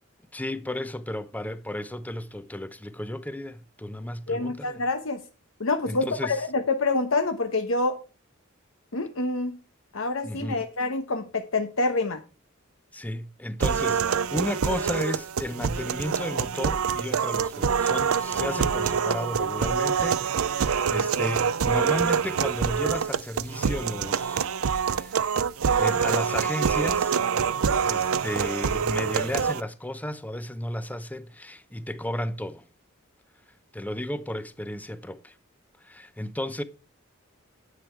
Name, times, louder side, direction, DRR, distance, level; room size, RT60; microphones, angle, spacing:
voice 1, 0.3-4.8 5.9-6.4 10.2-10.6 12.9-25.3 25.8-27.2 27.9-32.6 33.7-35.3 35.8-36.6, left 1 dB, 10° left, 0.8 m, -33 dB
voice 2, 4.3-5.2 5.6-8.0 8.9-9.5 9.9-12.2, left 3 dB, 70° left, 1.1 m, -26 dB
sound 1, 13.6-29.6, right 6 dB, 80° right, 0.6 m, -25 dB
9.9 x 8.8 x 4.6 m
head